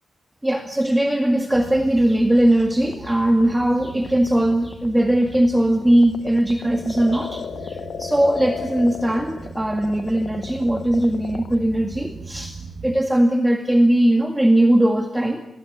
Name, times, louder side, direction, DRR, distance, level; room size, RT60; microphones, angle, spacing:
voice 1, 0.4-12.6 12.8-15.4, right 1 dB, 10° right, 6 dB, 2.0 m, -19 dB
sound 1, 1.5-13.0, right 4 dB, 55° right, 2.3 m, -40 dB
sound 2, 2.6-11.5, left 7 dB, 70° left, 1.4 m, -34 dB
27.5 x 20.5 x 9.6 m, 0.84 s
wide cardioid pair, 140°, 0 cm